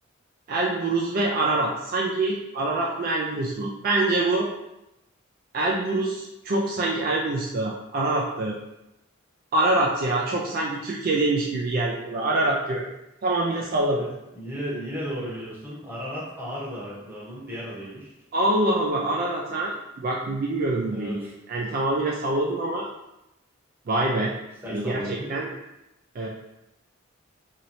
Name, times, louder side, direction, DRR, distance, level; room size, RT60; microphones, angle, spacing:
voice 1, 0.5-4.5 5.5-8.5 9.5-12.8 13.2-14.0 18.3-22.9 23.9-24.3 24.7-25.5 26.2-26.3, right 2 dB, 45° right, -2 dB, 0.3 m, -25 dB
voice 2, 13.9-18.1 20.9-21.3 24.6-25.3, equal, 10° right, -6 dB, 0.9 m, -35 dB
3.0 x 2.8 x 2.6 m, 0.90 s
head